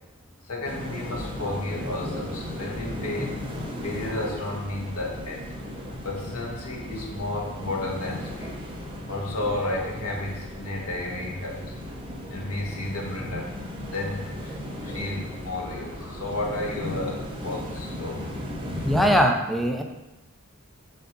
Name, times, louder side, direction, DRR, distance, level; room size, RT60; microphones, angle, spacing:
voice 1, 0.5-3.4 3.8-5.4 6.0-8.6 9.1-11.6 12.3-13.5 13.9-18.2 19.0-19.1, left 2 dB, 90° left, -2 dB, 1.5 m, -32 dB
sound 1, 0.7-19.2, left 1 dB, 25° right, 0.8 m, -36 dB
voice 2, 18.8-19.8, equal, ahead, 3 dB, 0.4 m, -21 dB
7.2 x 2.8 x 5.8 m, 1.1 s
head